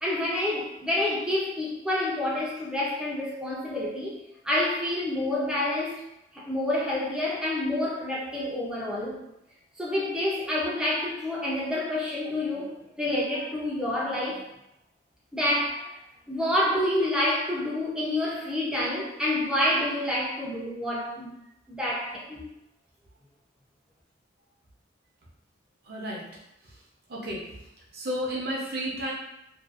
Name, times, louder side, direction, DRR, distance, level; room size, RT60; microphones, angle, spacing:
voice 1, 0.0-4.2 4.4-6.0 6.3-9.2 9.8-14.5 15.3-15.9 16.3-21.3 21.7-22.4, left 1 dB, 5° right, -6 dB, 0.5 m, -28 dB
voice 2, 25.9-26.2 27.1-27.6 27.9-29.1, equal, 50° right, -4 dB, 0.6 m, -32 dB
2.5 x 2.4 x 2.4 m, 0.85 s
head